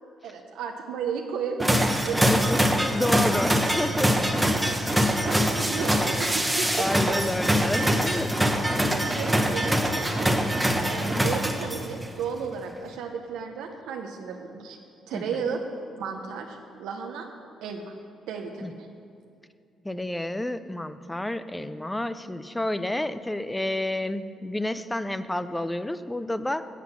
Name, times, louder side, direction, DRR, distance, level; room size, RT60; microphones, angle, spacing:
voice 1, 0.2-2.2 2.6-2.8 5.3-7.2 8.9-10.3 10.9-14.8 15.1-15.6 16.0-17.3 17.6-17.9 18.3-18.9, right 6 dB, 90° right, 2 dB, 0.7 m, -34 dB
sound 1, 1.6-12.0, equal, 10° right, 0.9 m, -24 dB
voice 2, 2.3-4.9 6.7-8.4 10.8-11.3 15.1-15.4 18.6-18.7 19.8-26.7, left 1 dB, 10° left, 13 dB, 0.5 m, -30 dB
8.2 x 7.7 x 7.2 m, 2.4 s
cardioid pair, 90°, 0 cm